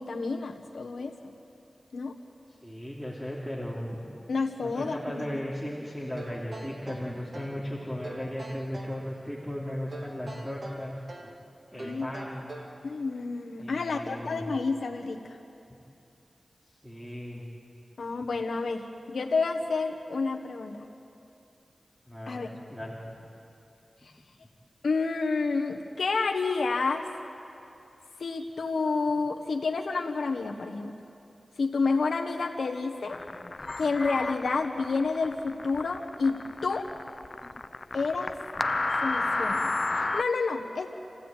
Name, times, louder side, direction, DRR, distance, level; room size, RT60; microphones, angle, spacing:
voice 1, 0.0-1.3 1.9-2.2 4.3-5.3 11.7-12.1 12.8-15.2 18.0-20.9 22.3-22.5 24.8-27.1 28.2-30.9 31.6-33.2 33.8-36.9 37.9-38.4 39.0-40.9, left 4 dB, 90° left, 2 dB, 1.3 m, -29 dB
voice 2, 2.6-4.0 4.6-11.3 11.7-12.5 13.6-14.4 16.8-17.5 22.1-23.0, equal, 5° right, -5 dB, 3.1 m, -36 dB
sound 1, 6.2-7.6 8.0-9.0 9.9-11.4 11.8-12.8, right 2 dB, 55° right, 2.3 m, -43 dB
sound 2, 33.1-40.2, left 2 dB, 45° left, 0.5 m, -31 dB
27.0 x 15.5 x 9.1 m, 2.8 s
wide cardioid pair, 65°, 0 cm